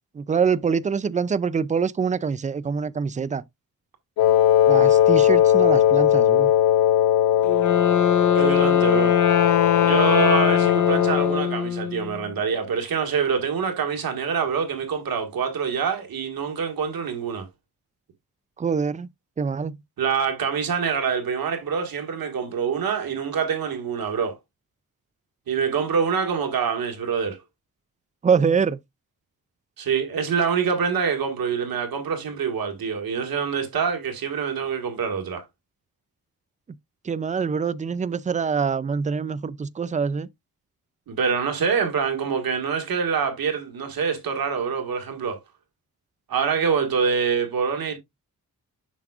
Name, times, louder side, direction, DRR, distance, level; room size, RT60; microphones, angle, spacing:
voice 1, 0.2-3.4 4.7-6.5 18.6-19.1 19.4-19.8 28.2-28.8 37.0-40.3, right 6 dB, 20° right, 0.3 m, -24 dB
Wind instrument woodwind instrument, 4.2-11.5, left 11 dB, 85° left, 0.5 m, -19 dB
Wind instrument woodwind instrument 2, 7.4-12.3, left 8 dB, 60° left, 0.9 m, -22 dB
voice 2, 8.3-9.1 9.8-17.4 20.0-24.4 25.5-27.4 29.8-35.4 41.1-45.4 46.3-48.0, right 6 dB, 80° right, 1.8 m, -25 dB
7.2 x 5.8 x 2.4 m
wide cardioid pair, 115°, 35 cm